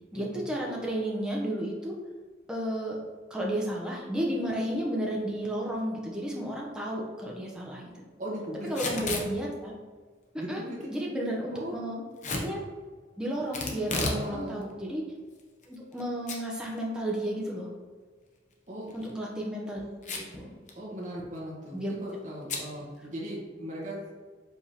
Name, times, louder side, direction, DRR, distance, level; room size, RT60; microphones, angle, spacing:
voice 1, 0.1-1.9 2.5-3.0 3.3-7.9 8.7-9.7 10.5-10.6 10.9-12.0 12.4-12.6 13.2-15.0 15.7-17.7 18.9-20.5 21.7-21.9, right 1 dB, 5° right, -3 dB, 0.6 m, -32 dB
voice 2, 8.2-8.7 10.4-10.9 11.5-11.8 14.0-14.6 18.7-19.0 20.7-24.1, equal, 40° right, -5 dB, 1.2 m, -38 dB
Packing tape duct tape / Tearing, 8.7-9.3 12.2-12.5 13.5-14.2 14.6-14.7 15.4-16.0 16.3-16.4 16.8-16.9 18.8-19.1 20.0-20.4 20.7-20.8 21.0-21.4 22.5-22.7, left 3 dB, 40° left, 0.6 m, -32 dB
4.7 x 3.5 x 2.8 m, 1.5 s
head